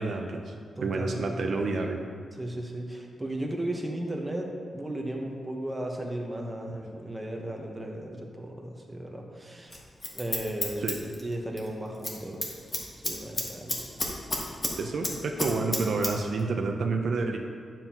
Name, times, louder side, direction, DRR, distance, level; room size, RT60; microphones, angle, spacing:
voice 1, 0.0-2.0 10.8-11.0 14.8-17.4, right 3 dB, 65° right, 3 dB, 0.6 m, -29 dB
voice 2, 0.8-1.4 2.4-9.7 10.1-12.6 12.9-13.8, right 1 dB, 15° right, 0 dB, 1.1 m, -35 dB
Scissors, 9.7-11.7 11.9-12.2 12.4-14.7 15.0-16.1 16.4-16.5, left 1 dB, 35° left, 1.4 m, -31 dB
8.9 x 7.3 x 2.9 m, 2.1 s
cardioid pair, 90°, 0 cm